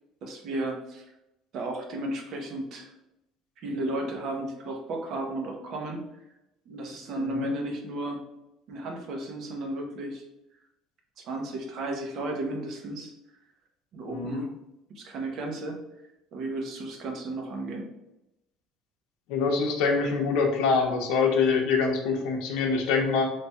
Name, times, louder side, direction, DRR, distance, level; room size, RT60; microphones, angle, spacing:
voice 1, 0.2-1.0 1.5-2.9 3.6-6.1 6.7-8.2 8.7-10.2 11.2-13.1 13.9-14.5 14.9-15.8 16.3-17.9, right 1 dB, 45° right, 2 dB, 0.7 m, -34 dB
voice 2, 7.1-7.5 14.1-14.5 19.3-23.3, left 4 dB, 75° left, 2 dB, 0.7 m, -25 dB
3.3 x 2.2 x 4.1 m, 0.89 s
cardioid pair, 175°, 0 cm